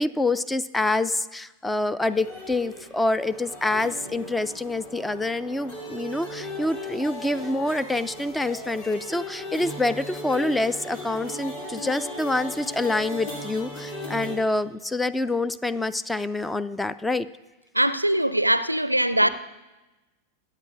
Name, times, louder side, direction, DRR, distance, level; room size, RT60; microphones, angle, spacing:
voice 1, 0.0-17.3, left 2 dB, 5° left, 0.3 m, -26 dB
sound 1, 2.0-14.4, left 1 dB, 45° left, 2.8 m, -37 dB
voice 2, 17.7-19.3, right 1 dB, 90° right, 0.4 m, -21 dB
23.0 x 8.3 x 2.5 m
figure-of-eight pair, 90°, 0 cm